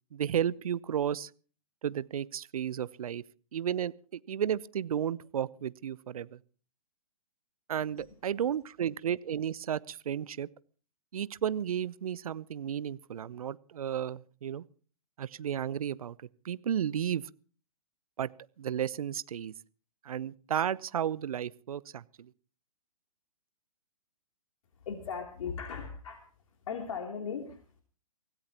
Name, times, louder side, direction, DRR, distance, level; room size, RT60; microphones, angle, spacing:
voice 1, 0.1-1.3 1.8-3.2 3.5-6.4 7.7-10.5 11.1-14.6 15.2-16.2 16.4-17.3 18.2-18.3 18.6-19.5 20.0-22.3, right 9 dB, 65° right, 20 dB, 0.8 m, -33 dB
voice 2, 24.8-26.3 26.7-27.8, left 6 dB, 55° left, 2 dB, 3.1 m, -38 dB
24.5 x 17.5 x 3.0 m, 0.40 s
figure-of-eight pair, 125°, 20 cm